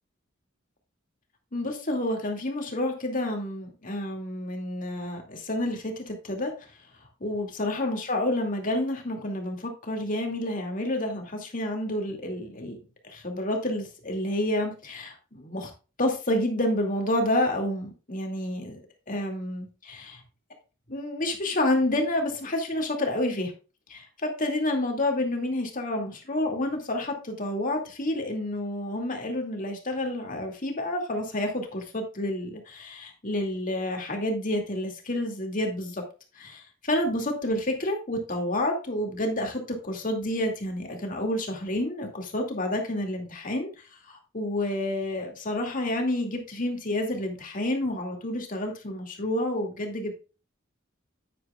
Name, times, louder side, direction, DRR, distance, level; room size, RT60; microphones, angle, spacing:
voice 1, 1.5-6.5 7.2-15.7 16.0-18.8 19.1-20.2 20.9-23.5 23.9-36.0 36.3-43.7 44.0-50.2, left 1 dB, 40° left, 2 dB, 2.4 m, -29 dB
9.7 x 9.4 x 2.4 m, 0.32 s
head